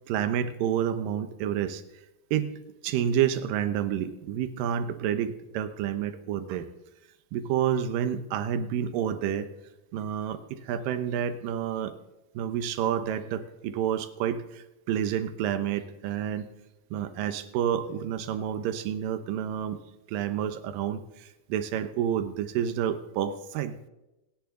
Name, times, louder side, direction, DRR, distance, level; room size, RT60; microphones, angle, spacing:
voice 1, 0.1-1.8 2.3-2.5 2.8-6.7 7.3-9.5 9.9-12.0 12.3-16.5 16.9-19.8 20.1-23.9, right 9 dB, 80° right, 10 dB, 2.6 m, -29 dB
27.0 x 10.0 x 3.8 m, 0.98 s
omnidirectional pair, 4.0 m